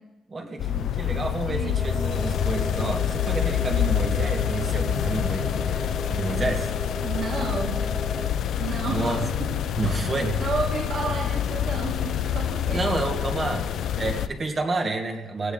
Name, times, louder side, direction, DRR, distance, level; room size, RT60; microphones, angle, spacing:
voice 1, 0.3-5.8 6.1-6.7 8.9-9.3 9.8-10.4 12.7-13.7 14.0-15.5, right 3 dB, 30° right, 3 dB, 1.7 m, -29 dB
sound 1, 0.6-14.3, left 10 dB, 70° left, 0.6 m, -27 dB
sound 2, 1.7-8.3, equal, 5° left, 1.5 m, -36 dB
voice 2, 7.0-7.7 8.6-9.3 9.8-10.1 10.4-12.9, right 4 dB, 55° right, -1 dB, 2.3 m, -32 dB
18.0 x 16.5 x 3.9 m, 1.1 s
cardioid pair, 135°, 0 cm